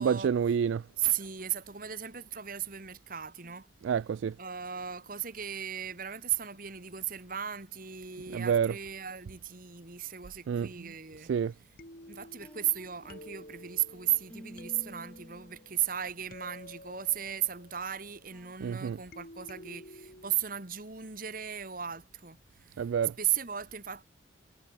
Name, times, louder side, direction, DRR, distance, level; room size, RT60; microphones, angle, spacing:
voice 1, 0.0-0.9 3.8-4.4 8.3-8.8 10.5-10.9 11.2-11.5 18.6-19.0 22.8-23.2, right 7 dB, 75° right, 0.3 m, -28 dB
voice 2, 1.0-3.7 4.4-11.3 12.0-22.8 23.2-24.0, right 11 dB, 45° right, 1.8 m, -35 dB
sound 1, 11.5-11.6 11.8-18.5 19.1-20.4, left 1 dB, 45° left, 5.9 m, -52 dB
sound 2, 12.4-16.0 16.5-16.8 17.3-17.6 18.3-18.7, equal, 5° left, 1.6 m, -52 dB
head